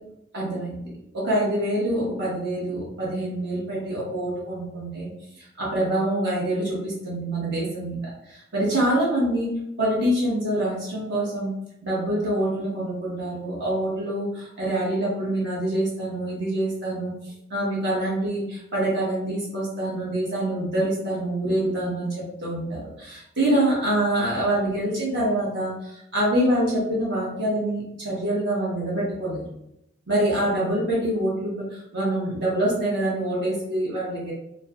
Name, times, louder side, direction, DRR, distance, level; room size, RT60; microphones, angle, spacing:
voice 1, 0.3-5.1 5.4-9.5 9.8-11.5 11.8-17.1 17.5-29.4 30.1-34.3, right 1 dB, 60° right, -6 dB, 1.2 m, -25 dB
4.4 x 2.2 x 2.3 m, 0.84 s
head